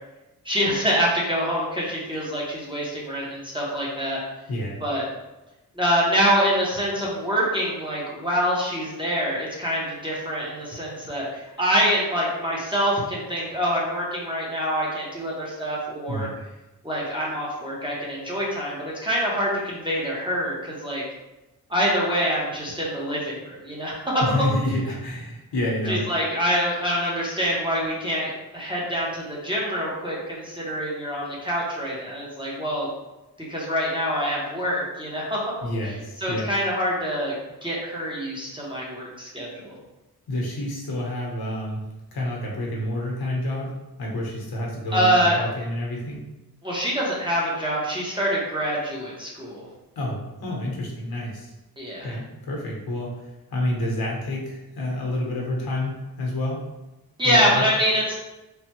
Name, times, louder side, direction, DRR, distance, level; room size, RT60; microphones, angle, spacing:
voice 1, 0.4-4.2 4.8-5.1 5.8-16.3 16.8-21.0 21.7-24.2 25.9-32.9 33.5-35.4 36.2-37.4 37.6-39.7 44.9-45.4 46.6-49.7 51.8-52.2 57.2-58.1, equal, 15° right, -6 dB, 0.6 m, -25 dB
voice 2, 4.5-4.8 16.1-16.3 24.2-26.1 35.6-36.5 40.3-41.8 42.1-43.7 44.0-46.3 50.0-51.5 52.0-53.1 53.5-56.6 57.2-57.7, left 1 dB, 75° left, -2 dB, 0.8 m, -28 dB
3.2 x 2.0 x 2.9 m, 1.0 s
wide cardioid pair, 155°, 38 cm